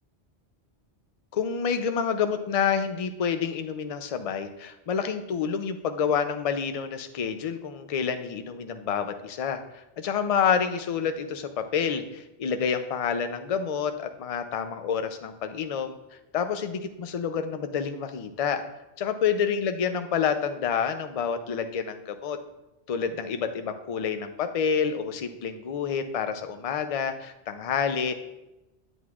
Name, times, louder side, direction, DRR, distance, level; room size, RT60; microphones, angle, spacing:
voice 1, 1.3-16.0 16.3-18.6 19.0-22.4 22.9-28.1, left 7 dB, 50° left, 8 dB, 0.4 m, -28 dB
9.8 x 7.7 x 2.4 m, 0.97 s
omnidirectional pair, 1.2 m